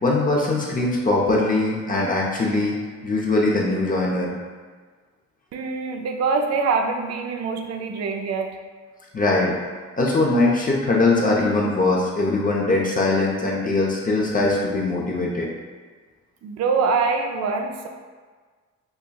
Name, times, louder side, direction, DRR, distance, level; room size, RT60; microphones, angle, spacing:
voice 1, 0.0-2.8 3.0-4.3 9.1-9.5 10.0-15.5, left 2 dB, 30° left, -3 dB, 0.6 m, -21 dB
voice 2, 5.5-8.6 16.4-17.9, right 4 dB, 60° right, 3 dB, 0.5 m, -24 dB
5.5 x 2.2 x 2.2 m, 1.5 s
cardioid pair, 90°, 30 cm